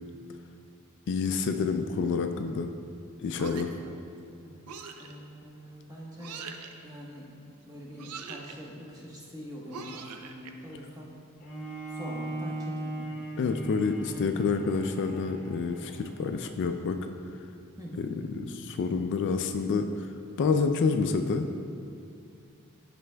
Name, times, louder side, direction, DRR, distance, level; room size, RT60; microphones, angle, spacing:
voice 1, 1.1-2.7 3.2-3.7 13.4-17.0 18.0-18.1 18.3-20.1 20.4-21.5, left 4 dB, 55° left, 6 dB, 0.3 m, -28 dB
sound 1, 3.4-3.9 4.7-5.1 6.2-6.7 8.0-8.5 9.7-10.5, right 5 dB, 85° right, 0.5 m, -41 dB
voice 2, 5.0-6.5 6.8-7.3 7.6-11.2 11.9-13.1 17.8-18.3, equal, 15° right, -5 dB, 1.1 m, -44 dB
Bowed string instrument, 11.4-16.6, right 1 dB, 35° left, 0.9 m, -38 dB
11.0 x 5.9 x 2.2 m, 2.4 s
head